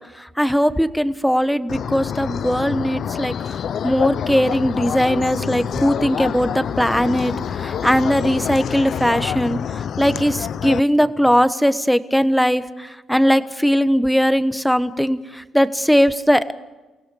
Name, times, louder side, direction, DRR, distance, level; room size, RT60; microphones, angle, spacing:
voice 1, 0.1-16.5, equal, ahead, 12 dB, 1.1 m, -19 dB
sound 1, 1.7-10.8, left 8 dB, 60° left, 0.5 m, -27 dB
29.5 x 17.0 x 5.4 m, 1.2 s
cardioid pair, 90°, 0 cm